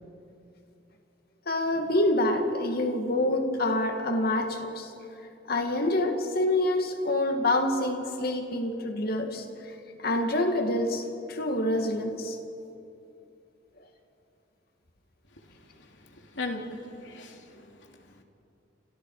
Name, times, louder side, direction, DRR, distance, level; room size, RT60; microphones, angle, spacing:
voice 1, 1.5-4.9 5.5-9.5 10.0-12.4, left 1 dB, 55° left, 4 dB, 2.4 m, -26 dB
voice 2, 15.8-18.1, left 2 dB, 80° left, 3 dB, 2.8 m, -39 dB
29.5 x 27.0 x 5.0 m, 2.7 s
head